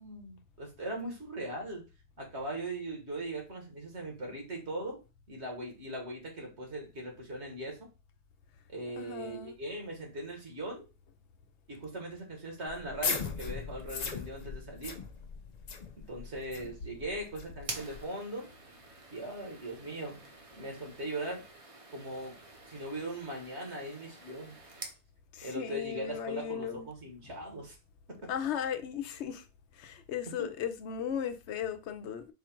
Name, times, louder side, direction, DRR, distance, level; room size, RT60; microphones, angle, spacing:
voice 1, 0.0-1.8 2.2-5.0 5.3-7.9 8.7-10.9 11.7-14.9 16.0-18.5 19.1-20.3 20.5-21.4 21.9-22.4 22.7-24.6 25.4-27.8 28.1-28.3 30.4-30.5, right 1 dB, 70° right, 1.9 m, -40 dB
voice 2, 9.0-9.5 25.3-26.9 28.3-29.4 29.8-32.3, left 8 dB, 80° left, 0.9 m, -36 dB
sound 1, 12.7-18.1, left 5 dB, 45° left, 0.6 m, -39 dB
sound 2, 17.6-25.0, right 2 dB, 35° right, 0.8 m, -48 dB
4.7 x 2.4 x 4.4 m
omnidirectional pair, 1.2 m